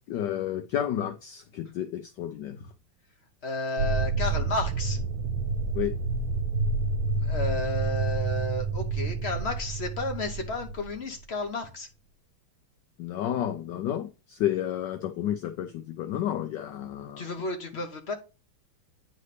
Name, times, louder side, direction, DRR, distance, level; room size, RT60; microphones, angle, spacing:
voice 1, 0.1-2.6 4.2-4.3 5.7-5.9 13.0-17.3, left 11 dB, 70° left, 1.1 m, -31 dB
voice 2, 3.4-5.3 7.2-11.9 17.2-18.1, left 2 dB, 45° left, 0.8 m, -32 dB
sound 1, 3.8-11.2, right 4 dB, 90° right, 1.4 m, -29 dB
9.6 x 4.2 x 3.3 m
omnidirectional pair, 2.3 m